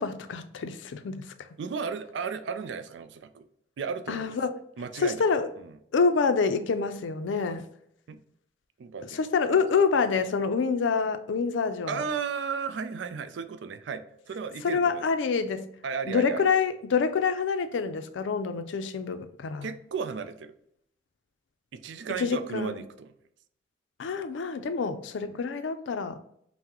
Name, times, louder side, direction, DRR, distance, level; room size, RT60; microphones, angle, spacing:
voice 1, 0.0-1.3 4.1-4.5 5.0-5.5 5.9-7.7 9.1-12.0 14.6-15.7 16.1-19.7 22.2-22.8 24.0-26.2, left 5 dB, 90° left, 0.4 m, -27 dB
voice 2, 1.6-3.5 3.8-4.4 4.8-5.2 5.6-5.7 8.1-8.2 8.8-9.2 11.9-15.1 15.8-16.4 19.6-20.5 21.7-23.1 25.2-25.4, right 6 dB, 75° right, 0.4 m, -34 dB
5.7 x 2.1 x 2.8 m
head